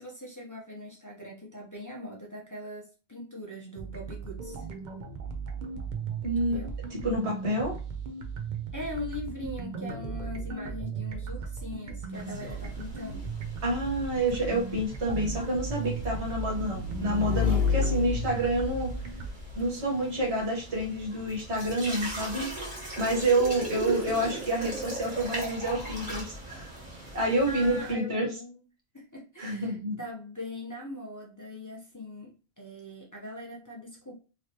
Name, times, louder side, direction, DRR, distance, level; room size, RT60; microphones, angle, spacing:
voice 1, 0.0-4.7 6.4-6.7 8.7-13.4 27.5-28.6 28.9-34.1, left 1 dB, 20° left, -4 dB, 0.7 m, -41 dB
sound 1, 3.8-19.3, right 6 dB, 50° right, 0.7 m, -37 dB
voice 2, 6.2-6.6 6.9-7.8 13.6-18.9 19.5-22.5 23.0-26.7 27.1-28.3 29.4-30.0, right 1 dB, 85° right, -2 dB, 1.6 m, -28 dB
sound 2, 12.1-27.9, right 2 dB, 35° right, 1.7 m, -40 dB
Motorcycle / Engine, 12.7-19.6, left 5 dB, 60° left, 1.0 m, -32 dB
3.1 x 3.1 x 2.9 m, 0.35 s
omnidirectional pair, 1.1 m